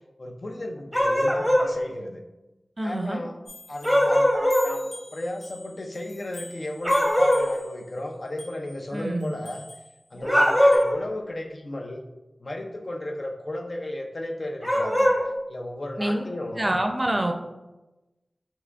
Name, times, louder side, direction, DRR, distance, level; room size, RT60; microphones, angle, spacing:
voice 1, 0.2-2.2 2.8-3.4 3.7-9.7 10.1-12.0 12.4-15.1 15.5-16.7, left 1 dB, 60° left, 3 dB, 0.5 m, -34 dB
sound 1, 0.9-1.7 3.8-4.7 6.8-7.5 10.2-11.0 14.6-15.2, equal, 5° left, 0.8 m, -20 dB
voice 2, 2.8-3.2 8.9-9.3 16.0-16.2 16.6-17.3, right 1 dB, 35° right, 4 dB, 0.5 m, -26 dB
sound 2, 3.5-10.8, left 2 dB, 90° left, 1.1 m, -46 dB
5.6 x 3.0 x 2.4 m, 1.0 s
wide cardioid pair, 60°, 0 cm